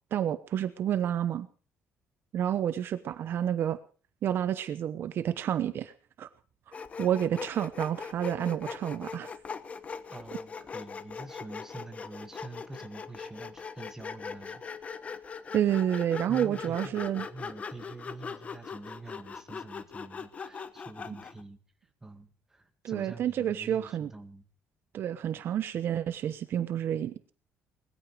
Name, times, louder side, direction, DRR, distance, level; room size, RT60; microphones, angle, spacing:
voice 1, 0.1-1.5 2.3-3.8 4.2-5.9 6.2-6.3 7.0-9.3 15.5-17.3 22.8-24.1 24.9-27.3, right 10 dB, 50° right, 12 dB, 1.0 m, -29 dB
Sawing, 6.7-21.4, left 5 dB, 30° left, 1.1 m, -41 dB
voice 2, 10.1-14.6 16.3-21.6 22.0-24.4, right 2 dB, 10° right, 6 dB, 2.0 m, -46 dB
20.5 x 14.5 x 4.8 m, 0.39 s
cardioid pair, 145°, 5 cm